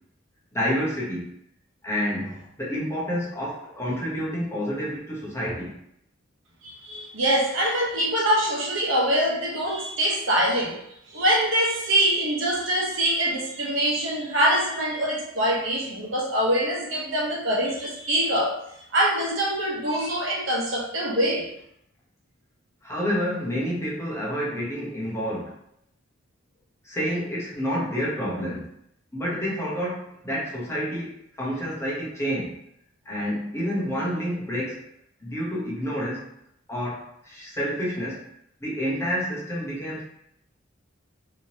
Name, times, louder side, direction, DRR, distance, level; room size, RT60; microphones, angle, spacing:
voice 1, 0.5-1.3 1.8-5.7 22.8-25.6 26.8-28.6 29.1-32.6 33.1-34.8 35.2-36.2 36.7-38.2 38.6-40.0, equal, 15° left, -6 dB, 0.9 m, -29 dB
voice 2, 6.6-10.8 11.1-18.6 18.9-21.4, right 1 dB, 75° right, -3 dB, 1.0 m, -24 dB
3.5 x 2.9 x 2.8 m, 0.75 s
head